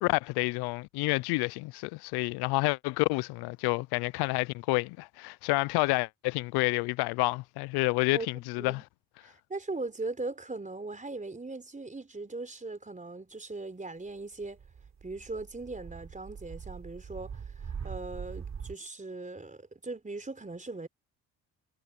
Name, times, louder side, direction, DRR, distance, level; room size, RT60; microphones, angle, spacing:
voice 1, 0.0-8.8, left 24 dB, 80° left, 0.5 m, -29 dB
voice 2, 8.1-8.8 9.2-14.6 15.0-20.9, right 3 dB, 20° right, 4.3 m, -39 dB
sound 1, 14.4-18.7, right 6 dB, 45° right, 3.5 m, -42 dB
supercardioid pair, 65°, 38 cm